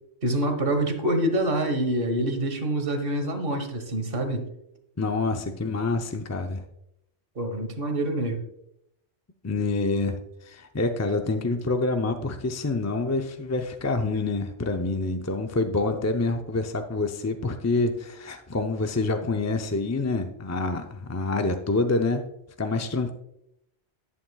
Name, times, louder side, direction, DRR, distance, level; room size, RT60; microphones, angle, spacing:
voice 1, 0.2-4.5 7.3-8.4, right 1 dB, 55° right, 7 dB, 1.4 m, -26 dB
voice 2, 5.0-6.6 9.4-22.3 22.6-23.1, left 3 dB, 25° left, 5 dB, 0.3 m, -27 dB
11.0 x 8.9 x 2.3 m, 0.79 s
omnidirectional pair, 1.2 m